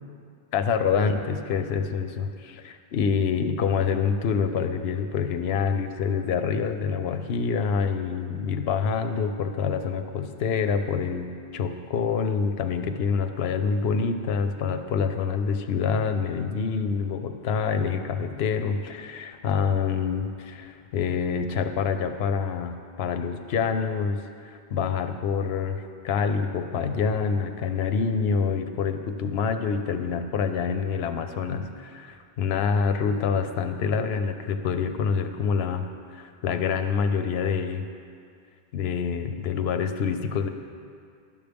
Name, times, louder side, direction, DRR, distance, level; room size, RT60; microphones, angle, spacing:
voice 1, 0.5-24.2 24.4-37.8 38.7-40.5, left 6 dB, 80° left, 8 dB, 0.8 m, -26 dB
11.0 x 7.2 x 3.4 m, 2.3 s
omnidirectional pair, 1.0 m